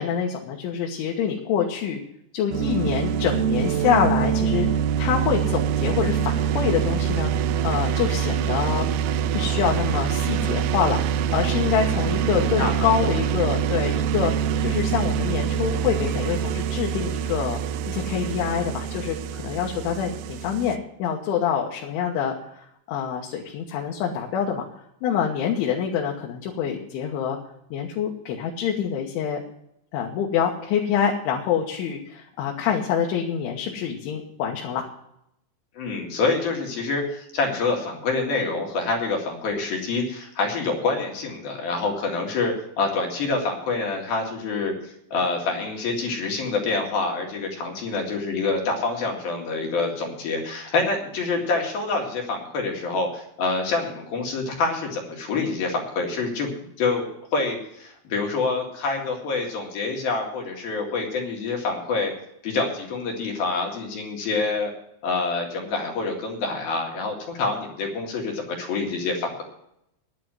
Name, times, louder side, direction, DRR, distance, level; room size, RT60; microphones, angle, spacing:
voice 1, 0.0-2.0 2.3-7.3 7.6-8.9 9.3-11.0 11.3-14.3 14.6-17.6 17.9-24.7 25.0-27.4 27.7-29.4 29.9-34.9, left 8 dB, 85° left, -1 dB, 3.7 m, -26 dB
sound 1, 2.5-20.8, right 8 dB, 85° right, 3.1 m, -25 dB
voice 2, 12.4-13.2 35.8-56.5 56.8-57.1 57.3-62.1 62.4-64.7 65.0-69.4, left 3 dB, 55° left, 1 dB, 3.6 m, -26 dB
10.5 x 9.2 x 7.6 m, 0.77 s
omnidirectional pair, 5.4 m